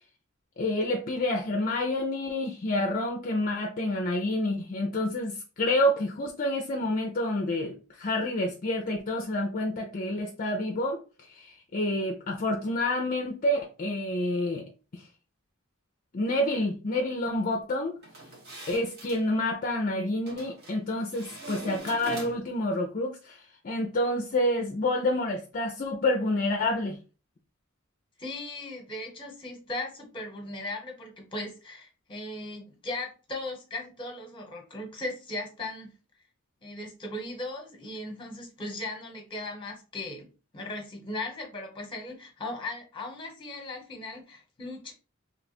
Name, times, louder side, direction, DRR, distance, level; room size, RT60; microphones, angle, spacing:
voice 1, 0.6-11.0 11.3-14.7 14.9-15.0 16.1-18.0 18.7-27.0, left 1 dB, 40° left, 0.5 m, -28 dB
sound 1, 18.0-19.2 20.3-20.8 21.1-22.6, right 1 dB, 55° right, 1.4 m, -43 dB
voice 2, 28.2-35.9 36.6-44.9, left 2 dB, 25° left, 1.1 m, -38 dB
3.1 x 2.4 x 4.1 m
head